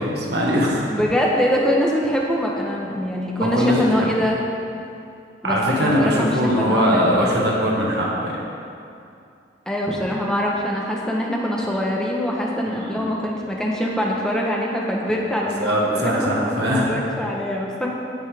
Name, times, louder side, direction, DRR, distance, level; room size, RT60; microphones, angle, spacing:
voice 1, 0.0-0.8 3.4-4.1 5.4-8.3 12.7-13.0 15.6-16.9, equal, 60° right, -4 dB, 1.7 m, -21 dB
voice 2, 0.9-4.4 5.4-7.3 9.7-17.9, equal, 5° left, -2 dB, 1.0 m, -23 dB
15.5 x 5.4 x 3.6 m, 2.6 s
head